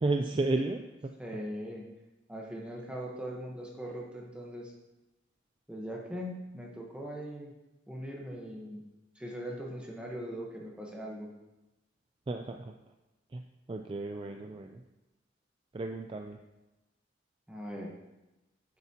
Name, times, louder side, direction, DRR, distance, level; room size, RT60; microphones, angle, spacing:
voice 1, 0.0-1.1 12.3-12.7 13.3-13.4 13.7-14.8 15.7-16.4, right 2 dB, 25° right, 4 dB, 0.4 m, -33 dB
voice 2, 1.2-1.8 2.3-4.7 5.7-7.5 7.9-8.8 9.1-11.3 17.5-17.9, equal, 5° right, -2 dB, 1.1 m, -40 dB
9.9 x 8.0 x 2.9 m, 1.0 s
head